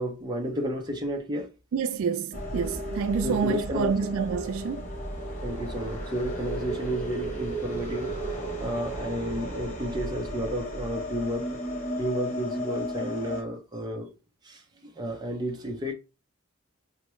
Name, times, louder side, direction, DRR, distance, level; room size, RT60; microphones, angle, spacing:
voice 1, 0.0-1.5 3.2-3.9 5.4-8.2 8.6-11.6 12.0-14.1 14.4-15.9, equal, 20° right, 0.6 m, -32 dB
voice 2, 1.7-4.9, right 6 dB, 75° right, 0.3 m, -28 dB
sound 1, 2.3-13.4, right 1 dB, 35° left, 1.0 m, -34 dB
4.5 x 2.1 x 3.0 m
head